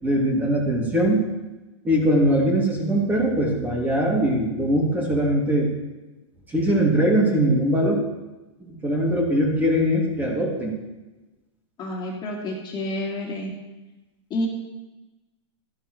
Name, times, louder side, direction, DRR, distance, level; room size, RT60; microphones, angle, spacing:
voice 1, 0.0-1.3 1.8-5.7 6.5-8.0 8.6-10.7, equal, 10° right, -2 dB, 2.8 m, -21 dB
voice 2, 11.8-13.5 14.3-14.5, left 1 dB, 30° left, -1 dB, 2.4 m, -29 dB
13.5 x 11.0 x 3.3 m, 1.1 s
hypercardioid pair, 125°, 16 cm